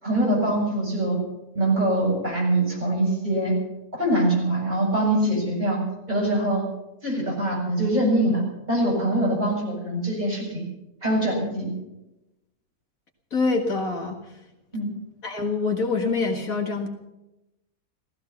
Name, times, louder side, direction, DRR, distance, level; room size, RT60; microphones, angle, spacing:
voice 1, 0.0-1.2 1.5-3.5 4.0-5.8 6.1-6.6 7.0-8.4 8.7-10.6 11.0-11.7 14.7-14.9, right 1 dB, 25° right, -3 dB, 7.0 m, -23 dB
voice 2, 13.3-14.2 15.2-16.9, left 4 dB, 60° left, 3 dB, 2.2 m, -25 dB
16.0 x 15.0 x 5.9 m, 0.95 s
omnidirectional pair, 1.6 m